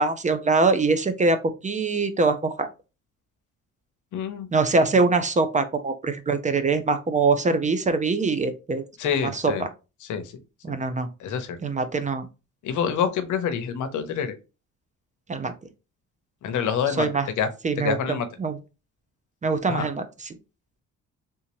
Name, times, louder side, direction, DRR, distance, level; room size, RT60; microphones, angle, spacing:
voice 1, 0.0-1.4 1.6-2.7 4.5-9.5 10.6-11.1 11.6-12.3 15.3-15.5 16.9-17.3 17.6-18.6 19.4-20.3, right 3 dB, 25° right, 9 dB, 0.5 m, -23 dB
voice 2, 4.1-4.5 9.0-9.6 10.1-10.2 11.2-11.6 12.6-14.3 16.4-17.1 17.4-17.5 17.8-18.3 19.7-19.9, left 7 dB, 75° left, 10 dB, 0.8 m, -26 dB
3.4 x 2.8 x 2.9 m, 0.29 s
cardioid pair, 90°, 30 cm